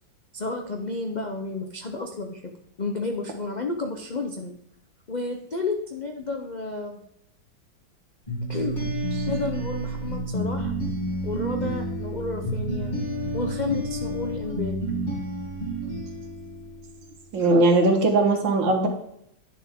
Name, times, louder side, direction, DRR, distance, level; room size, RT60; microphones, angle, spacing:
voice 1, 0.3-4.5 5.1-7.0 8.5-8.8 9.3-10.7 11.2-12.9 13.3-14.8, left 3 dB, 80° left, 3 dB, 0.4 m, -31 dB
sound 1, 8.3-17.0, right 1 dB, 25° left, 2.5 m, -30 dB
voice 2, 17.3-18.9, right 2 dB, 70° right, 3 dB, 2.1 m, -19 dB
10.0 x 6.9 x 3.6 m, 0.75 s
omnidirectional pair, 2.1 m